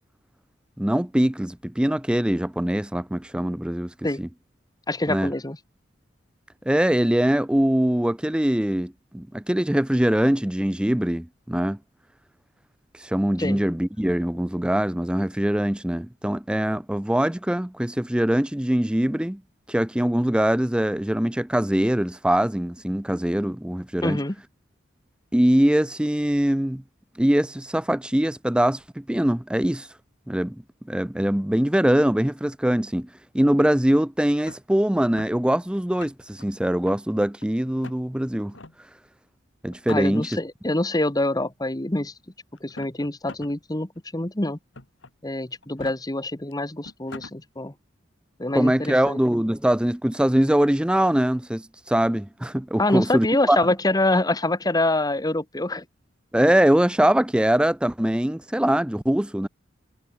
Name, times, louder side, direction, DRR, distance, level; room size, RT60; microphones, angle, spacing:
voice 1, 0.8-4.3 5.1-5.3 6.7-11.8 13.0-19.4 19.7-24.2 25.3-26.8 27.2-29.9 30.3-30.6 30.9-33.1 33.3-38.5 39.6-40.3 48.5-53.6 56.3-59.5, right 1 dB, 5° right, 0.5 m, -22 dB
voice 2, 4.9-5.6 13.4-13.6 24.0-24.3 39.9-42.1 42.6-44.6 45.2-47.7 48.4-49.2 52.8-55.8, left 2 dB, 20° left, 1.4 m, -25 dB
sound 1, 34.4-35.4 35.8-36.4 36.9-37.4 37.8-38.0 38.5-38.8 39.7-40.4 41.4-41.5 42.6-43.6 44.0-44.1 44.7-45.1 45.6-46.0 46.5-46.6 46.8-47.4, left 2 dB, 75° left, 2.6 m, -42 dB
head